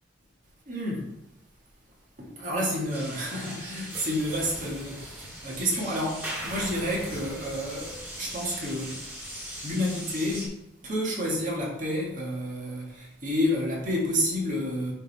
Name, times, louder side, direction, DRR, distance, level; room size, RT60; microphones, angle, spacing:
voice 1, 0.7-1.1 2.2-9.0 9.6-10.6 10.8-14.9, equal, 40° right, -4 dB, 1.9 m, -30 dB
sound 1, 2.9-10.5, equal, 10° right, 2.5 m, -39 dB
9.5 x 3.7 x 4.2 m, 0.88 s
head